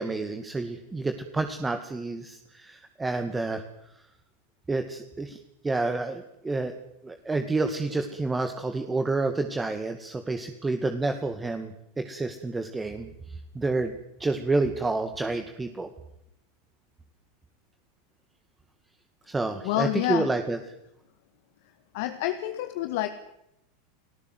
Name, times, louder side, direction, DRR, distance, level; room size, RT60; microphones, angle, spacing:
voice 1, 0.0-3.6 4.7-5.4 5.6-6.7 7.0-11.7 12.0-13.9 14.2-15.9 19.3-20.6, right 3 dB, 15° right, 7 dB, 2.2 m, -29 dB
voice 2, 19.6-20.3 21.9-23.1, left 14 dB, 60° left, 8 dB, 1.8 m, -28 dB
30.0 x 18.5 x 8.0 m, 0.83 s
hypercardioid pair, 90°, 0 cm